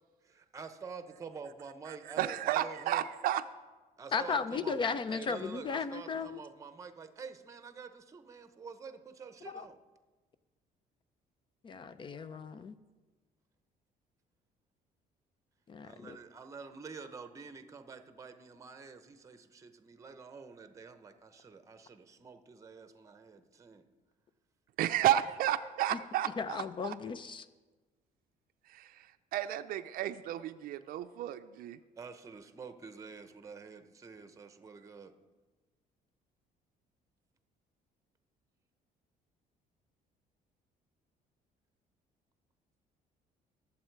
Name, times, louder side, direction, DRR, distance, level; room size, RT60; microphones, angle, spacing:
voice 1, 0.2-3.0 4.0-4.8 5.1-9.8 12.4-12.6 15.8-23.8 32.0-35.1, right 5 dB, 20° right, 9 dB, 0.8 m, -48 dB
voice 2, 1.9-3.4 24.8-26.9 28.7-31.8, right 12 dB, 70° right, 11 dB, 0.5 m, -32 dB
voice 3, 4.1-6.4 9.5-9.7 11.6-12.8 15.7-16.2 26.4-27.5, left 5 dB, 30° left, 13 dB, 0.5 m, -35 dB
21.5 x 7.3 x 4.6 m, 1.3 s
cardioid pair, 140°, 15 cm